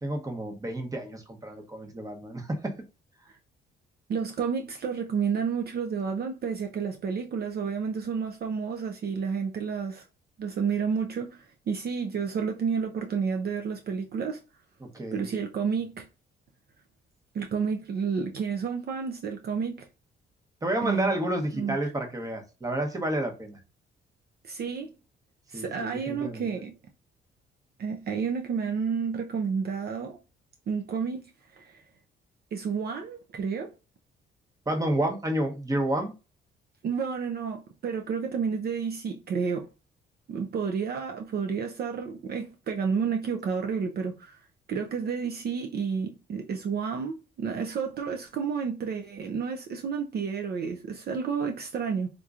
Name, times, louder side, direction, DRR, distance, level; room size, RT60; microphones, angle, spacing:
voice 1, 0.0-2.7 14.8-15.3 20.6-23.6 25.5-26.5 34.7-36.1, right 1 dB, 15° right, 0.9 m, -30 dB
voice 2, 4.1-10.0 10.4-14.4 15.1-16.1 17.3-19.9 20.8-21.1 21.5-21.8 24.4-24.9 25.5-26.8 27.8-30.2 30.7-31.3 31.5-31.8 32.5-33.7 36.8-39.7 40.3-44.4 44.7-52.1, right 6 dB, 55° right, 0.5 m, -30 dB
3.6 x 2.8 x 2.4 m
cardioid pair, 90°, 20 cm